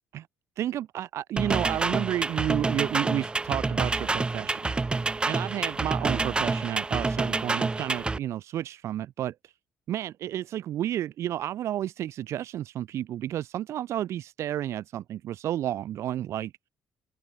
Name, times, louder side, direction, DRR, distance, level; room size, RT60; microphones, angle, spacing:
voice 1, 0.6-4.7 5.3-9.5 9.9-16.5, right 12 dB, 65° right, 6.6 m, -31 dB
sound 1, 1.4-8.2, right 3 dB, 20° right, 4.8 m, -28 dB
open air
cardioid pair, 125°, 5 cm